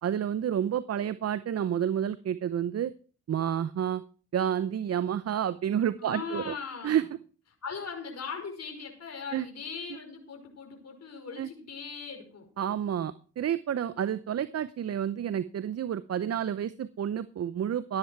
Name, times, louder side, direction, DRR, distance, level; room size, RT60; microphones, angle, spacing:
voice 1, 0.0-2.9 3.3-4.0 4.3-6.5 6.8-7.0 9.3-9.4 11.4-11.5 12.6-18.0, right 9 dB, 45° right, 15 dB, 0.7 m, -29 dB
voice 2, 6.0-7.1 7.6-12.5, left 5 dB, 50° left, 3 dB, 5.3 m, -39 dB
15.5 x 10.5 x 4.6 m, 0.39 s
supercardioid pair, 60°, 34 cm